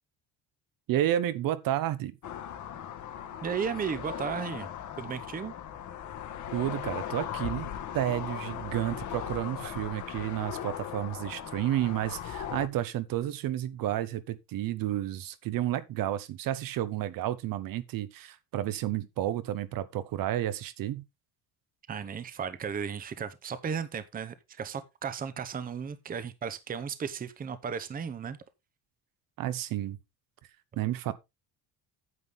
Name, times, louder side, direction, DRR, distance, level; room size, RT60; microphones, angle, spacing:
voice 1, 0.9-2.1 6.5-21.0 29.4-30.0 30.8-31.1, right 13 dB, 60° right, 1.0 m, -31 dB
sound 1, 2.2-12.7, left 9 dB, 50° left, 1.3 m, -38 dB
voice 2, 3.4-4.7 5.0-5.5 21.9-28.4, right 7 dB, 20° right, 0.8 m, -35 dB
9.6 x 8.1 x 3.6 m
cardioid pair, 160°, 39 cm